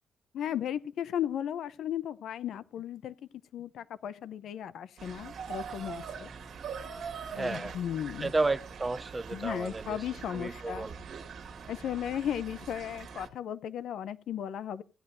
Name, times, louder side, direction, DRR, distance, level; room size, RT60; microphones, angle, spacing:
voice 1, 0.3-3.1 3.5-6.3 7.3-8.3 9.3-10.9 11.7-14.8, left 10 dB, 65° left, 0.7 m, -35 dB
sound 1, 5.0-13.3, right 6 dB, 55° right, 1.8 m, -43 dB
voice 2, 7.3-7.7 8.2-10.0 10.3-11.0, right 3 dB, 15° right, 0.6 m, -32 dB
16.0 x 10.5 x 2.7 m
cardioid pair, 145°, 0 cm